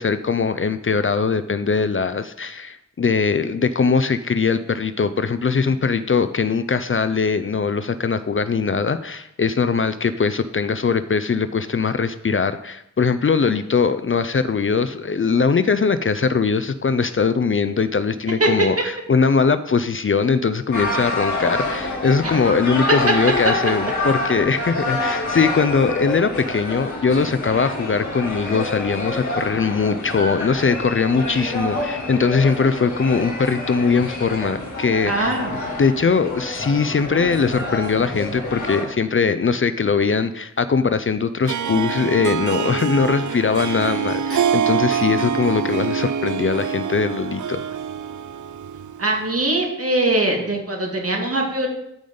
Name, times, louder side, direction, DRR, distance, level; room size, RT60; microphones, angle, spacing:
voice 1, 0.0-35.4 35.8-47.6, left 5 dB, 45° left, 12 dB, 0.5 m, -21 dB
sound 1, 20.7-38.8, left 2 dB, 85° left, 2.2 m, -27 dB
voice 2, 35.0-35.5 49.0-51.7, right 2 dB, 55° right, 1 dB, 2.0 m, -21 dB
Harp, 41.4-49.2, right 7 dB, 90° right, 0.5 m, -25 dB
14.0 x 5.1 x 3.9 m, 0.79 s
wide cardioid pair, 85°, 29 cm